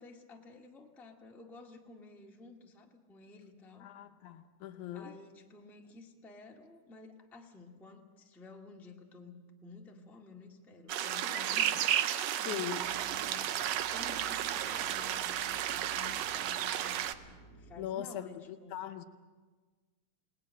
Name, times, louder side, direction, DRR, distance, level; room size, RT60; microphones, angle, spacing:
voice 1, 0.0-3.9 4.9-12.0 12.4-17.0 17.5-18.8, left 3 dB, ahead, -1 dB, 0.9 m, -52 dB
voice 2, 3.8-5.1 12.5-12.8 17.8-19.0, left 11 dB, 75° left, 7 dB, 2.1 m, -40 dB
sound 1, 10.9-17.1, right 11 dB, 75° right, 1.7 m, -33 dB
sound 2, 12.8-17.8, right 2 dB, 60° right, 4.1 m, -56 dB
28.5 x 19.0 x 6.5 m, 1.4 s
omnidirectional pair, 3.8 m